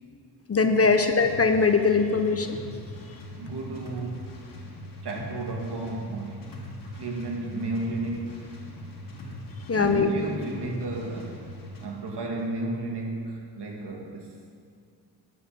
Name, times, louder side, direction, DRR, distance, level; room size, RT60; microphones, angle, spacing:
voice 1, 0.5-2.6 9.7-10.1, left 4 dB, 35° left, 7 dB, 1.0 m, -21 dB
sound 1, 1.2-11.9, left 1 dB, 50° left, 2.1 m, -41 dB
voice 2, 3.4-4.4 5.0-6.6 7.0-8.4 9.7-11.5 11.8-14.5, right 2 dB, 65° right, 0 dB, 2.2 m, -33 dB
11.0 x 5.6 x 8.7 m, 2.2 s
cardioid pair, 60°, 44 cm